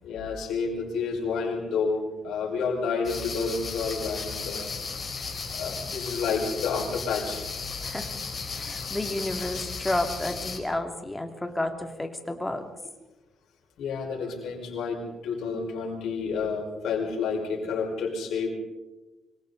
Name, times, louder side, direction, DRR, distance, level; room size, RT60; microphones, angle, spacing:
voice 1, 0.0-4.7 5.5-7.4 13.8-18.5, left 5 dB, 75° left, 1 dB, 5.3 m, -30 dB
sound 1, 3.0-10.6, left 5 dB, 40° left, 4.3 m, -35 dB
voice 2, 7.8-8.2 8.4-12.7, left 1 dB, 10° left, 4 dB, 2.8 m, -31 dB
26.0 x 24.0 x 4.1 m, 1.0 s
cardioid pair, 110°, 0 cm